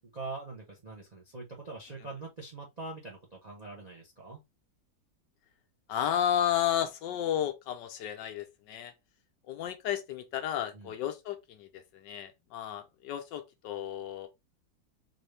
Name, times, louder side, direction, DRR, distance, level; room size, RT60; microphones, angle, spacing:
voice 1, 0.1-4.4 10.7-10.9, right 3 dB, 50° right, 0.5 m, -43 dB
voice 2, 5.9-8.9 9.5-14.3, left 10 dB, 75° left, 1.2 m, -32 dB
4.2 x 2.5 x 3.2 m
omnidirectional pair, 2.1 m